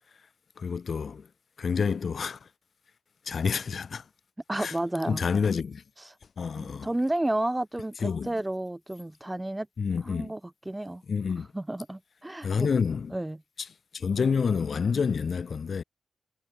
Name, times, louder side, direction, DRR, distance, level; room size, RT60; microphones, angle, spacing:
voice 1, 0.6-1.3 1.6-2.5 3.3-4.0 4.5-4.7 5.1-5.8 6.4-6.9 8.0-8.3 9.8-10.3 11.1-11.5 12.4-13.1 13.6-13.7 13.9-15.8, left 6 dB, 60° left, 0.8 m, -28 dB
voice 2, 4.5-5.2 6.6-9.7 10.1-10.4 10.7-11.0 11.5-12.7 13.1-13.4, right 1 dB, 15° right, 2.3 m, -31 dB
cardioid pair, 55°, 0 cm